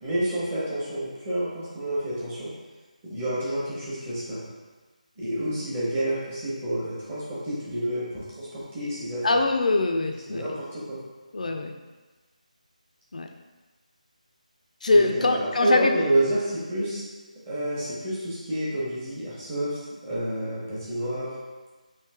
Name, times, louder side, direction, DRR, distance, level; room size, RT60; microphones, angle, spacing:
voice 1, 0.0-2.5 3.0-4.5 5.2-9.4 10.3-11.0 14.9-17.0 17.5-21.3, right 1 dB, 20° right, -9 dB, 0.8 m, -29 dB
voice 2, 9.2-10.5 11.3-11.7 13.1-13.3 14.8-15.9, left 2 dB, 65° left, 4 dB, 0.4 m, -23 dB
3.2 x 2.7 x 3.4 m, 1.3 s
figure-of-eight pair, 165°, 4 cm